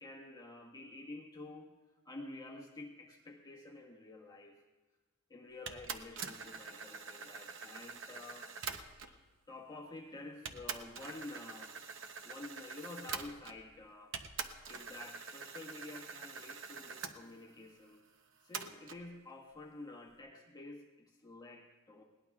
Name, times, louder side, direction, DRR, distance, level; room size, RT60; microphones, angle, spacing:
voice 1, 0.0-1.7 2.0-4.6 5.3-8.5 9.1-9.2 9.5-11.8 12.2-14.1 14.7-18.0 18.4-22.0, left 2 dB, 20° left, 0 dB, 1.5 m, -50 dB
sound 1, 5.7-9.2 10.0-10.1 10.5-13.7 14.1-17.2 18.5-19.0, right 6 dB, 65° right, 0.8 m, -45 dB
20.5 x 18.5 x 2.4 m, 1.2 s
head